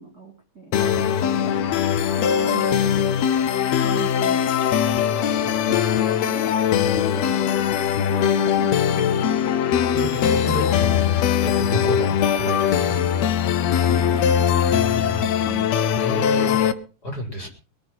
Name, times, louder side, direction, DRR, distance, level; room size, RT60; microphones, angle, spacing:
voice 1, 0.0-1.3 2.2-4.8 5.7-7.5 8.0-9.1 13.6-15.7, right 4 dB, 30° right, 2 dB, 2.9 m, -38 dB
sound 1, 0.7-16.7, left 8 dB, 70° left, 1.7 m, -21 dB
voice 2, 5.2-5.5 9.9-11.1 11.4-13.0 16.0-16.6 17.0-17.5, right 1 dB, 25° left, 1 dB, 4.3 m, -30 dB
22.0 x 8.7 x 5.9 m, 0.38 s
omnidirectional pair, 4.0 m